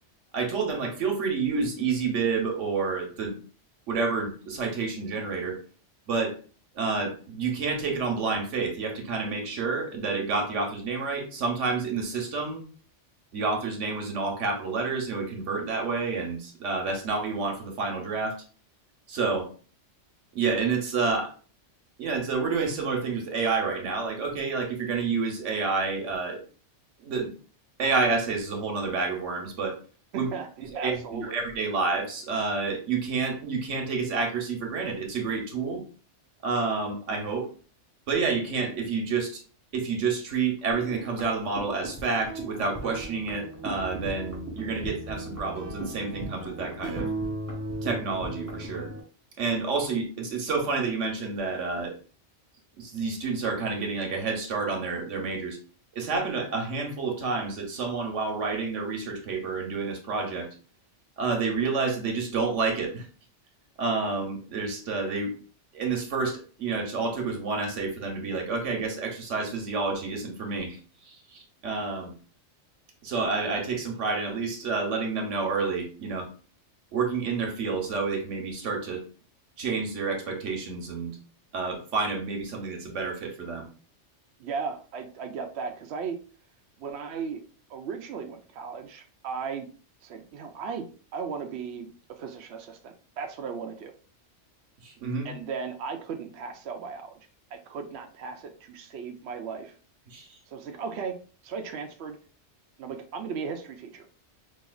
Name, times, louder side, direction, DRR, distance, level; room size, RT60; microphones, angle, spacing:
voice 1, 0.3-3.4 3.9-5.6 6.1-6.4 6.7-12.6 13.3-18.4 19.1-19.5 20.3-21.3 22.0-26.4 27.0-27.3 27.8-29.8 30.1-30.3 30.7-35.8 36.4-37.5 38.1-39.4 39.7-47.1 47.8-48.9 49.4-51.9 52.8-55.6 55.9-60.5 61.2-63.1 63.8-65.3 65.7-70.8 71.1-72.1 73.0-76.3 76.9-79.0 79.6-81.2 81.5-83.7 94.8-95.3 100.1-100.4, right 4 dB, 90° right, 3 dB, 1.3 m, -29 dB
voice 2, 30.1-31.4 84.4-86.2 86.8-87.4 87.7-89.7 90.0-90.9 91.1-93.9 95.2-97.2 97.5-99.7 100.5-101.2 101.4-102.2 102.8-104.1, right 5 dB, 70° right, 4 dB, 0.8 m, -36 dB
sound 1, 40.7-49.0, right 1 dB, 15° right, 1.1 m, -37 dB
5.2 x 2.8 x 2.3 m, 0.39 s
omnidirectional pair, 1.2 m